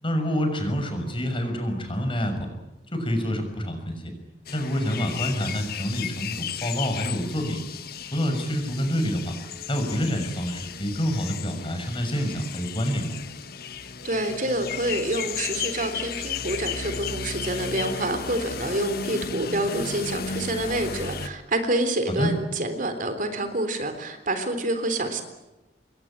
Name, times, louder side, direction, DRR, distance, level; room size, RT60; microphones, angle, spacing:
voice 1, 0.0-2.5 2.9-4.1 4.5-7.6 8.1-9.3 9.7-13.2 22.1-22.3, equal, 30° left, 6 dB, 6.5 m, -27 dB
sound 1, 4.5-21.3, left 6 dB, 60° left, 1.5 m, -34 dB
voice 2, 14.0-25.2, right 1 dB, 50° right, 8 dB, 3.6 m, -27 dB
27.5 x 22.5 x 8.9 m, 1.0 s
head